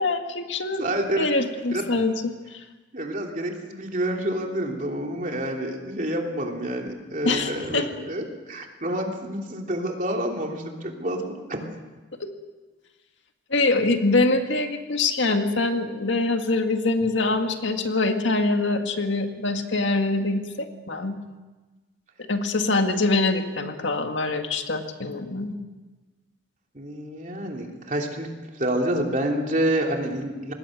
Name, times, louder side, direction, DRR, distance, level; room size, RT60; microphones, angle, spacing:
voice 1, 0.0-0.9 1.2-2.6 7.2-7.9 12.2-12.3 13.5-21.2 22.3-25.6, left 3 dB, 75° left, 5 dB, 1.9 m, -24 dB
voice 2, 0.8-1.2 1.7-1.8 2.9-11.6 26.7-28.3 28.5-30.5, right 1 dB, 40° right, 1 dB, 3.2 m, -28 dB
26.5 x 20.0 x 6.6 m, 1.2 s
head